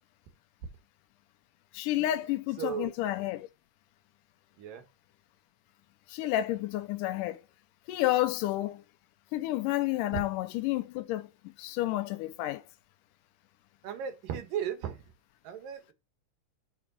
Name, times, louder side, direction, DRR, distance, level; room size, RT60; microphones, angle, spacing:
voice 1, 1.7-3.5 6.1-7.4 7.9-8.8 9.3-11.3 11.6-12.6, left 15 dB, 85° left, 2.1 m, -30 dB
voice 2, 2.6-2.9 4.6-4.8 10.1-10.2 13.8-15.0 15.4-15.9, right 9 dB, 85° right, 3.1 m, -35 dB
6.0 x 5.1 x 6.1 m
omnidirectional pair, 3.8 m